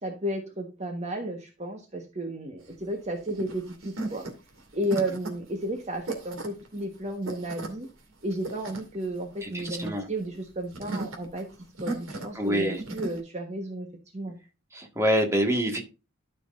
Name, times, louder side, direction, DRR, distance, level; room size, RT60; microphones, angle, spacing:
voice 1, 0.0-4.2 4.7-7.9 8.2-11.5 11.8-13.9 14.1-14.4, right 1 dB, 35° right, 3 dB, 1.3 m, -33 dB
sound 1, 2.6-13.2, right 2 dB, 75° right, 2.5 m, -38 dB
voice 2, 9.4-10.1 12.4-12.8 14.7-15.8, equal, 15° right, 2 dB, 1.9 m, -26 dB
12.5 x 6.3 x 2.6 m, 0.29 s
head